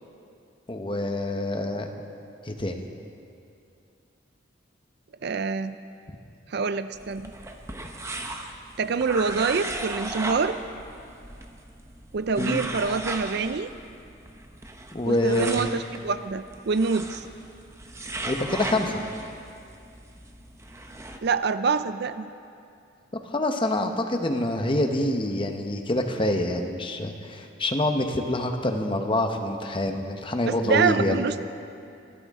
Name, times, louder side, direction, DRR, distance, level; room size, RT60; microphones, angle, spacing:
voice 1, 0.7-1.9 2.4-2.8 12.4-12.6 14.9-15.7 18.2-19.0 23.3-31.2, left 1 dB, 25° left, 5 dB, 1.0 m, -26 dB
voice 2, 5.2-5.8 6.5-7.3 8.8-10.6 12.1-13.7 15.1-17.2 21.2-22.3 30.5-31.4, right 5 dB, 55° right, 13 dB, 0.4 m, -26 dB
sound 1, 6.9-21.2, right 2 dB, 15° right, 0.8 m, -37 dB
24.5 x 13.5 x 3.7 m, 2.5 s
head